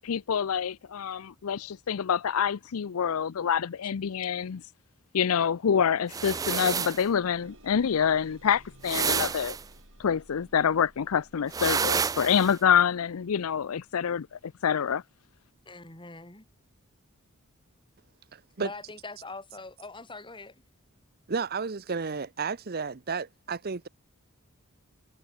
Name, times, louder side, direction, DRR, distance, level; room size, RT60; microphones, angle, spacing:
voice 1, 0.0-4.6 5.1-9.6 10.0-14.3 14.6-15.0, left 7 dB, 75° left, 0.5 m, -26 dB
sound 1, 6.0-16.7 17.5-17.6 18.1-18.2, right 1 dB, 60° right, 5.5 m, -57 dB
sound 2, 6.1-7.1 8.8-9.6 11.5-12.6, right 6 dB, 15° right, 0.3 m, -29 dB
voice 2, 15.6-16.4 18.6-20.5, left 3 dB, 20° left, 6.1 m, -43 dB
voice 3, 18.3-18.7 21.3-23.9, right 4 dB, 45° right, 0.8 m, -32 dB
head